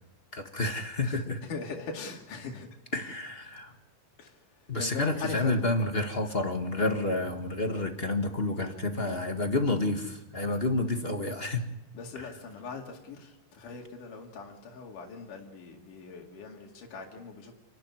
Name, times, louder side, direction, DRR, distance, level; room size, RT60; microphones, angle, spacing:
voice 1, 0.3-1.4 2.9-3.7 4.7-11.7 12.1-12.3, left 2 dB, 25° left, 5 dB, 1.3 m, -29 dB
voice 2, 1.5-2.7 4.2-4.4 4.8-5.9 11.9-17.5, left 4 dB, 85° left, 0 dB, 3.9 m, -40 dB
29.0 x 12.0 x 9.8 m, 0.90 s
omnidirectional pair, 3.6 m